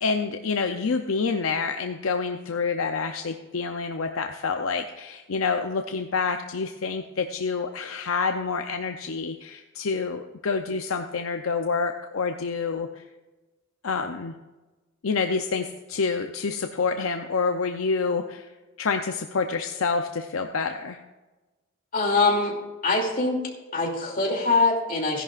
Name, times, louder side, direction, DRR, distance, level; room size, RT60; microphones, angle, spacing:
voice 1, 0.0-13.0 13.8-14.3 15.0-18.5 18.8-21.0, left 4 dB, 75° left, 6 dB, 0.6 m, -27 dB
voice 2, 21.9-22.5 22.8-23.4 23.7-25.2, left 3 dB, 45° left, -1 dB, 2.7 m, -23 dB
16.5 x 11.0 x 2.4 m, 1.2 s
head